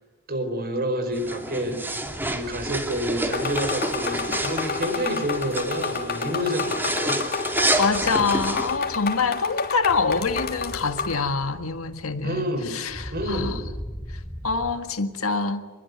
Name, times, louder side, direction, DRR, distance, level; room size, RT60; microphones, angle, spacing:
voice 1, 0.3-1.9 2.3-7.2 12.2-12.8 13.1-13.6, equal, 45° right, 4.7 m, -28 dB
sound 1, 1.1-8.8, right 1 dB, 10° right, 2.5 m, -29 dB
sound 2, 2.0-14.8, equal, 5° left, 2.9 m, -41 dB
sound 3, 3.3-11.2, left 5 dB, 45° left, 3.2 m, -30 dB
voice 2, 7.8-13.6 14.1-15.6, left 4 dB, 75° left, 1.8 m, -25 dB
27.0 x 22.0 x 9.6 m
head